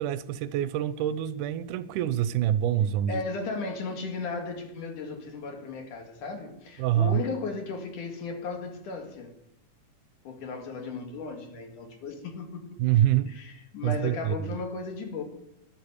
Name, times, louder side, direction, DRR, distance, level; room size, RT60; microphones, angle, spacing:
voice 1, 0.0-3.2 6.8-7.2 12.8-13.3 13.8-14.6, right 11 dB, 80° right, 2.1 m, -26 dB
voice 2, 3.1-9.3 10.3-12.8 13.3-15.2, left 4 dB, 70° left, 3.7 m, -35 dB
13.5 x 11.0 x 8.2 m
omnidirectional pair, 3.7 m